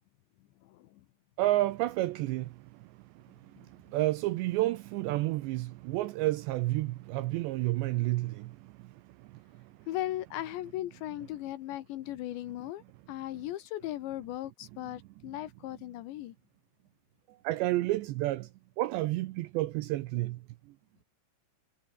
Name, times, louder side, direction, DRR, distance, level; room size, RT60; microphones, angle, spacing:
voice 1, 0.6-1.0 9.9-12.8 13.1-16.3, left 14 dB, 75° left, 3.1 m, -37 dB
voice 2, 1.4-3.2 3.6-9.7 17.4-18.5 18.8-20.4, right 17 dB, 80° right, 2.6 m, -31 dB
omnidirectional pair, 5.8 m